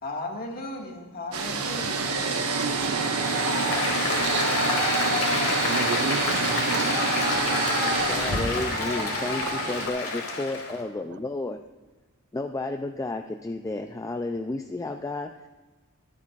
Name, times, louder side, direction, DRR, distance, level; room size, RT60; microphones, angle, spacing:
voice 1, 0.0-2.0, left 2 dB, 45° left, 0 dB, 1.9 m, -35 dB
sound 1, 1.3-9.9, right 4 dB, 75° right, 1.3 m, -28 dB
voice 2, 2.3-3.5 4.2-4.5 5.2-7.2 11.1-11.2, right 6 dB, 50° right, 13 dB, 0.4 m, -35 dB
Applause, 3.2-10.8, left 3 dB, 75° left, 2.4 m, -28 dB
voice 3, 8.1-11.6 12.3-15.5, left 2 dB, 15° left, 5 dB, 0.4 m, -32 dB
23.0 x 8.6 x 2.5 m, 1.2 s
head